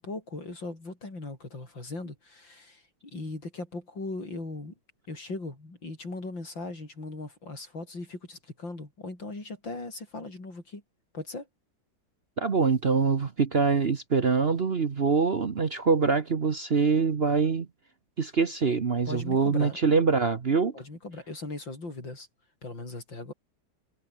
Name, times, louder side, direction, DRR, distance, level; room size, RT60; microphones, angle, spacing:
voice 1, 0.0-4.8 5.1-10.8 11.1-11.5 19.1-19.8 20.7-22.3 22.6-23.3, left 2 dB, 85° left, 7.4 m, -39 dB
voice 2, 12.4-17.7 18.2-20.8, right 5 dB, 40° right, 1.1 m, -24 dB
omnidirectional pair, 2.0 m